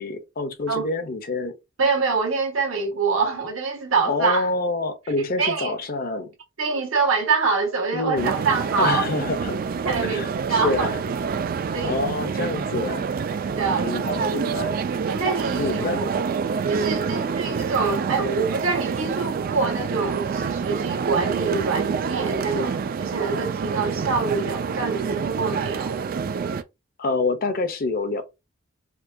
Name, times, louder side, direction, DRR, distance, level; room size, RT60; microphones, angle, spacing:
voice 1, 0.0-1.5 4.1-6.3 7.9-8.3 8.8-9.6 10.0-11.0 11.8-13.1 13.8-14.8 15.6-16.0 27.0-28.2, left 3 dB, 45° left, 0.6 m, -27 dB
voice 2, 1.8-4.5 5.4-5.7 6.6-9.0 9.8-10.9 11.7-11.9 13.4-14.0 15.1-16.1 16.7-26.0, right 4 dB, 85° right, 1.3 m, -25 dB
sound 1, 8.2-26.6, right 5 dB, 45° right, 0.3 m, -27 dB
4.5 x 2.3 x 2.6 m
head